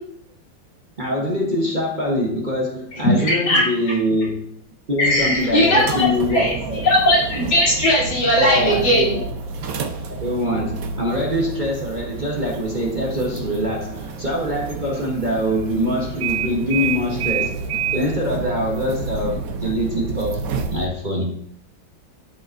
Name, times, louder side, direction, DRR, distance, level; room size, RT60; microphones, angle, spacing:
voice 1, 1.0-4.5 4.9-6.9 8.1-9.3 10.1-17.7 17.9-21.4, equal, 30° right, -2 dB, 0.9 m, -24 dB
voice 2, 3.2-3.6 5.0-6.5 6.8-9.1, left 1 dB, 90° left, -6 dB, 3.9 m, -18 dB
sound 1, 5.0-20.9, right 5 dB, 60° right, 1.0 m, -29 dB
13.0 x 5.4 x 2.6 m, 0.66 s
omnidirectional pair, 2.1 m